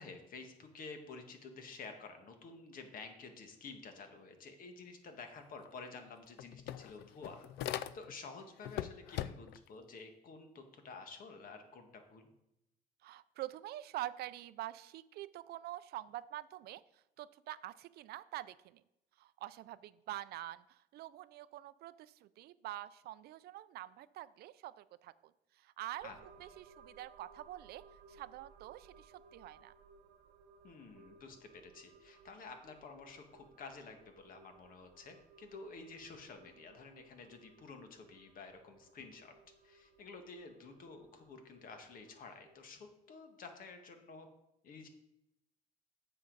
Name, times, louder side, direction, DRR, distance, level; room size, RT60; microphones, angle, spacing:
voice 1, 0.0-7.5 7.7-12.3 26.0-26.2 30.6-39.3 39.6-44.3 44.6-44.9, left 4 dB, 55° left, 5 dB, 1.5 m, -51 dB
sound 1, 5.6-5.7 6.0-8.3 8.6-9.7, left 12 dB, 80° left, 0.4 m, -41 dB
voice 2, 13.0-18.8 19.2-26.1 26.4-27.8 28.1-29.7, right 14 dB, 70° right, 16 dB, 0.4 m, -46 dB
sound 2, 26.0-42.7, right 4 dB, 90° right, 0.8 m, -62 dB
9.7 x 6.8 x 4.0 m, 0.84 s
cardioid pair, 110°, 17 cm